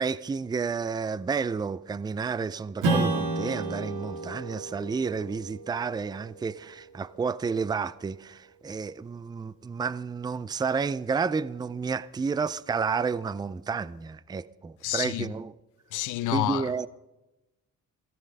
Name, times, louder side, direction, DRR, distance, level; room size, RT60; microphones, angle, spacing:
voice 1, 0.0-15.5 16.3-16.9, right 5 dB, 15° right, 0.4 m, -31 dB
Strum, 2.8-7.7, right 2 dB, 80° right, 2.6 m, -32 dB
voice 2, 14.8-15.3 15.9-16.9, left 15 dB, 90° left, 0.7 m, -29 dB
16.5 x 13.5 x 5.3 m
cardioid pair, 90°, 30 cm